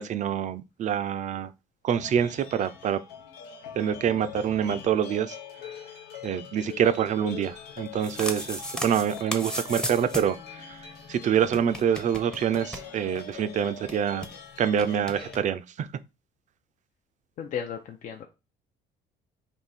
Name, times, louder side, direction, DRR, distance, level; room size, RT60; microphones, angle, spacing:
voice 1, 0.0-1.5 1.8-3.0 3.8-5.4 6.2-10.8 11.1-14.3 14.6-15.9, right 8 dB, 45° right, 0.4 m, -26 dB
sound 1, 1.9-15.4, left 7 dB, 85° left, 0.9 m, -43 dB
sound 2, 7.8-10.4 10.7-10.8 11.0-11.1 11.4-13.3 13.6-13.7 13.9-14.3 14.8-15.4, equal, 5° left, 0.7 m, -35 dB
voice 2, 17.4-18.3, left 8 dB, 50° left, 0.6 m, -34 dB
3.7 x 2.7 x 4.1 m
cardioid pair, 110°, 17 cm